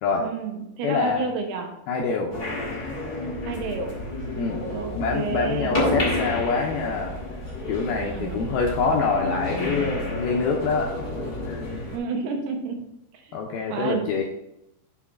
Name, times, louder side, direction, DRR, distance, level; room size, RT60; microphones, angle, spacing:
voice 1, 0.2-1.7 3.4-4.0 4.7-5.8 8.0-8.4 11.9-12.8 13.1-13.4 13.7-14.1, right 4 dB, 75° right, 3 dB, 2.8 m, -30 dB
voice 2, 0.8-1.3 1.9-2.3 4.4-4.6 4.9-7.2 7.7-10.9 11.5-11.6 13.3-14.2, left 4 dB, 80° left, 0 dB, 2.3 m, -25 dB
sound 1, 2.3-12.0, left 1 dB, 30° left, 2.0 m, -30 dB
7.1 x 4.8 x 4.3 m, 0.82 s
omnidirectional pair, 5.0 m